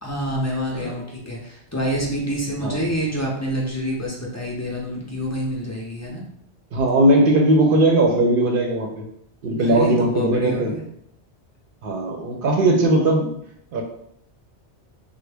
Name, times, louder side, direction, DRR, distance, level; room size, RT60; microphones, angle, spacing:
voice 1, 0.0-6.2 9.6-10.8, equal, 25° left, -3 dB, 0.3 m, -27 dB
voice 2, 6.7-9.0 9.4-10.8 11.8-13.3 13.7-13.8, right 1 dB, 60° right, 2 dB, 0.7 m, -18 dB
3.3 x 2.1 x 3.3 m, 0.73 s
omnidirectional pair, 1.1 m